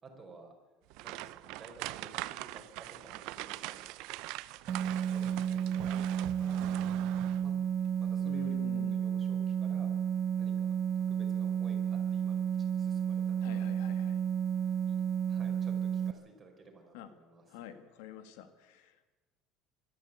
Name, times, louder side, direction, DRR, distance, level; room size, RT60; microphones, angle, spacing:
voice 1, 0.0-0.5 1.0-4.0 5.0-7.0 7.4-7.5 8.0-9.9 10.4-13.7 14.1-14.3 14.5-17.6, right 2 dB, 20° right, 2 dB, 4.8 m, -54 dB
sound 1, 0.9-7.6 7.9-8.1 8.6-8.7, right 18 dB, 70° right, 0.7 m, -42 dB
sound 2, 4.7-16.1, right 8 dB, 35° right, 1.1 m, -32 dB
voice 2, 8.2-9.0 13.4-14.2 16.9-17.1 17.5-19.1, left 9 dB, 90° left, 10 dB, 2.0 m, -47 dB
23.5 x 13.0 x 8.5 m, 1.2 s
cardioid pair, 150°, 0 cm